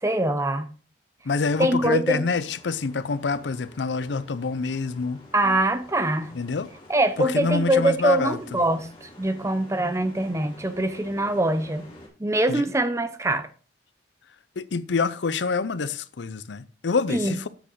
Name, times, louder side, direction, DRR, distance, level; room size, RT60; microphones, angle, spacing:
voice 1, 0.0-0.7 1.6-2.2 5.3-6.3 6.9-11.9 12.2-13.5 17.1-17.4, right 1 dB, 15° right, 0.7 m, -23 dB
voice 2, 1.2-5.2 6.3-6.7 7.2-8.4 12.5-12.6 14.6-17.5, left 4 dB, 80° left, 0.6 m, -26 dB
sound 1, 2.2-12.1, left 1 dB, 30° left, 2.9 m, -49 dB
8.0 x 6.4 x 4.6 m
head